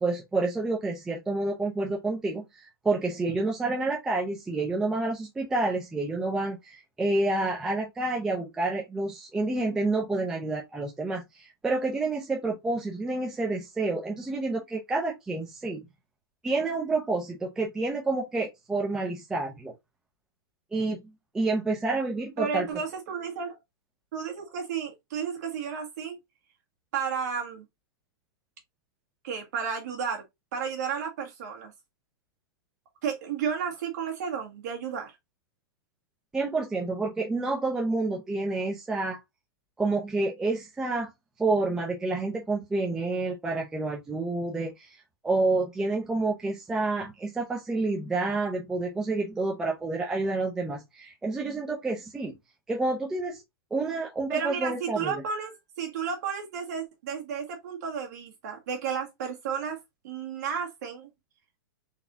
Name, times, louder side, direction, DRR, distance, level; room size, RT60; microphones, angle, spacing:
voice 1, 0.0-15.8 16.4-19.7 20.7-21.0 21.3-22.7 36.3-39.2 39.8-41.1 41.4-52.3 52.7-53.4 53.7-55.1, right 3 dB, 5° right, 0.4 m, -29 dB
voice 2, 22.4-23.6 24.1-26.2 26.9-27.7 29.2-30.2 30.5-31.7 33.0-35.2 54.3-59.8 60.0-61.1, right 7 dB, 45° right, 1.7 m, -32 dB
4.0 x 3.4 x 2.7 m
supercardioid pair, 175°, 13 cm